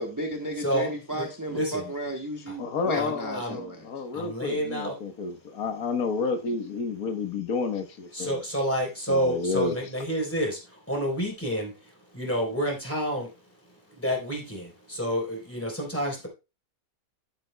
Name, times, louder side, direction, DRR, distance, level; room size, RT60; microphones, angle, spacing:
voice 1, 0.0-3.8, right 1 dB, 15° right, 1.0 m, -33 dB
voice 2, 0.6-1.9 2.5-2.6 2.9-3.6 4.1-5.0 8.1-13.3 13.9-16.3, equal, 10° left, 3.6 m, -29 dB
voice 3, 2.6-8.4 9.1-9.8, left 4 dB, 85° left, 1.6 m, -30 dB
11.0 x 8.6 x 2.2 m
omnidirectional pair, 1.5 m